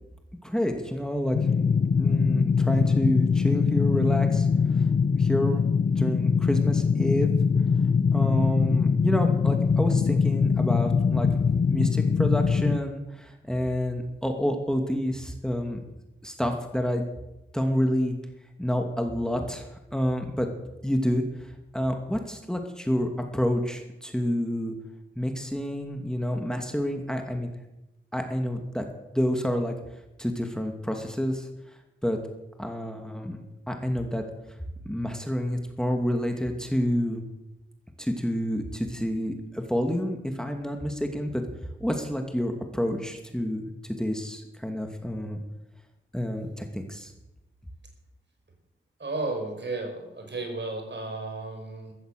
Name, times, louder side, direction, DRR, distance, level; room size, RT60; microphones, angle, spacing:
voice 1, 0.4-1.4 2.0-4.5 4.8-4.9 5.2-5.6 6.0-7.3 8.1-11.3 11.7-15.8 16.2-17.0 17.5-18.1 18.6-19.7 19.9-20.5 20.8-21.2 21.7-24.7 25.2-27.5 28.1-28.8 29.1-29.7 30.2-31.5 32.0-32.2 32.6-33.4 33.7-34.2 34.9-37.2 38.0-41.4 41.8-43.7 44.0-45.4 46.1-47.1, equal, 5° left, 4 dB, 2.5 m, -28 dB
sound 1, 1.3-12.8, left 5 dB, 45° left, 0.6 m, -23 dB
voice 2, 49.0-51.9, right 2 dB, 60° right, 3 dB, 5.3 m, -33 dB
14.5 x 14.0 x 6.8 m, 0.94 s
cardioid pair, 45°, 21 cm